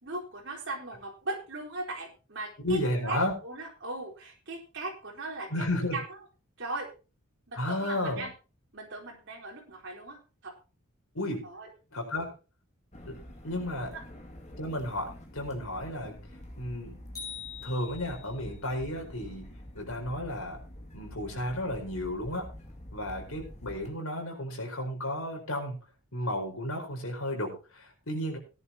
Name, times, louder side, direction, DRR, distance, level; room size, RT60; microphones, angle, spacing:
voice 1, 0.0-5.7 5.9-6.2 6.6-6.9 7.5-8.3 8.7-10.5 11.4-11.7 13.9-14.0, right 2 dB, 55° right, 0 dB, 4.1 m, -38 dB
voice 2, 2.6-3.3 5.5-6.0 7.6-8.3 11.1-11.5 11.9-12.3 13.0-13.1 13.4-13.9 14.6-16.2 16.6-17.0 17.6-19.5 19.7-20.6 20.9-22.5 22.9-25.8 26.1-28.4, left 1 dB, 70° left, 2 dB, 4.6 m, -33 dB
sound 1, 12.9-23.9, equal, 30° left, 2.2 m, -47 dB
sound 2, 17.1-18.5, left 7 dB, 15° left, 7.4 m, -43 dB
17.5 x 11.0 x 2.9 m, 0.32 s
head